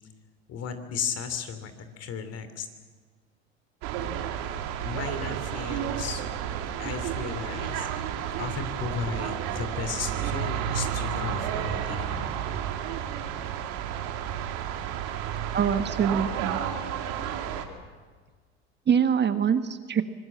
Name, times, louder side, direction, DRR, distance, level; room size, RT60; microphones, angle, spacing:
voice 1, 0.5-2.7 4.8-6.2 6.8-7.9 8.4-12.4, left 6 dB, 45° left, 9 dB, 3.1 m, -35 dB
sound 1, 3.8-17.7, right 9 dB, 65° right, 2.6 m, -31 dB
voice 2, 15.5-16.6 18.9-20.0, right 7 dB, 30° right, 10 dB, 1.3 m, -24 dB
25.0 x 19.5 x 7.7 m, 1.5 s
hypercardioid pair, 80°, 34 cm